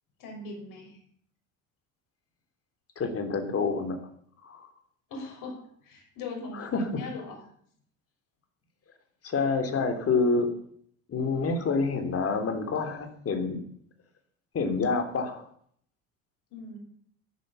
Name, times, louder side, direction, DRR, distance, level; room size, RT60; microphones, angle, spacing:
voice 1, 0.2-1.0 5.1-7.4 16.5-16.8, left 3 dB, 50° left, 2 dB, 6.1 m, -40 dB
voice 2, 3.0-4.0 4.4-4.7 6.6-6.9 9.2-10.5 11.1-13.6 14.5-15.4, left 4 dB, 35° left, 6 dB, 3.5 m, -27 dB
13.5 x 12.0 x 7.2 m, 0.63 s
figure-of-eight pair, 60°, 41 cm